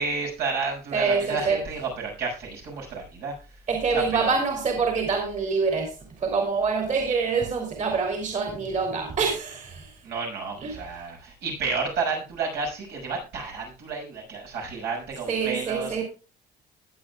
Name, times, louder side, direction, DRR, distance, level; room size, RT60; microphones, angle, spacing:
voice 1, 0.0-3.3 3.9-4.3 10.0-16.0, right 4 dB, 80° right, -1 dB, 6.3 m, -31 dB
voice 2, 0.9-1.6 3.7-10.0 10.6-10.9 15.3-16.0, right 5 dB, 45° right, 3 dB, 3.4 m, -26 dB
20.5 x 8.6 x 2.4 m, 0.33 s
cardioid pair, 110°, 17 cm